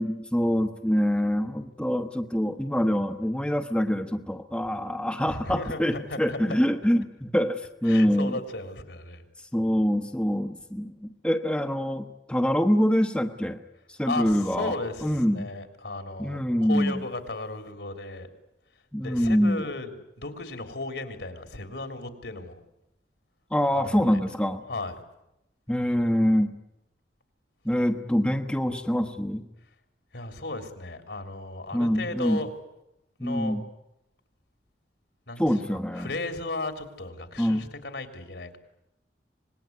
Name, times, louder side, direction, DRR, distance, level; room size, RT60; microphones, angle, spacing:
voice 1, 0.0-8.4 9.5-13.6 14.0-15.5 16.2-17.0 18.9-19.6 23.5-24.6 25.7-26.5 27.6-29.4 31.7-32.4 33.2-33.6 35.4-36.1 37.4-37.6, equal, 5° left, 5 dB, 1.1 m, -25 dB
voice 2, 5.3-6.6 7.9-9.2 14.1-18.3 19.0-22.6 23.7-24.2 24.7-25.0 30.1-32.5 33.2-33.6 35.3-35.6 36.0-38.6, left 2 dB, 70° left, 7 dB, 3.4 m, -35 dB
26.0 x 20.5 x 9.5 m, 0.87 s
head